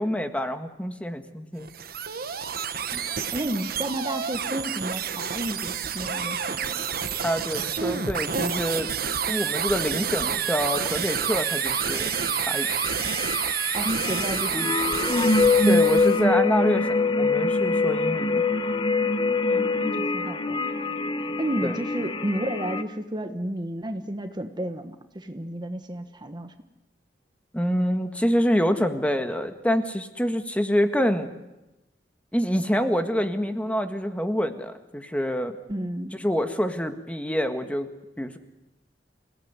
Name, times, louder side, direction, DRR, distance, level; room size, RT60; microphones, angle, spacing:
voice 1, 0.0-1.7 7.2-8.9 9.3-12.1 12.5-12.7 15.6-18.4 21.6-21.8 27.5-31.3 32.3-35.5 36.1-37.9 38.2-38.4, equal, 10° left, 7 dB, 1.7 m, -26 dB
sound 1, 1.6-16.2, right 7 dB, 60° right, 1.3 m, -29 dB
voice 2, 2.9-6.8 7.8-8.1 13.7-15.2 19.5-20.6 21.4-26.5 35.7-36.1, right 1 dB, 25° right, 7 dB, 1.3 m, -32 dB
sound 2, 6.1-6.7 11.0-22.8, left 3 dB, 30° left, 1.1 m, -25 dB
27.5 x 17.5 x 9.7 m, 1.0 s
head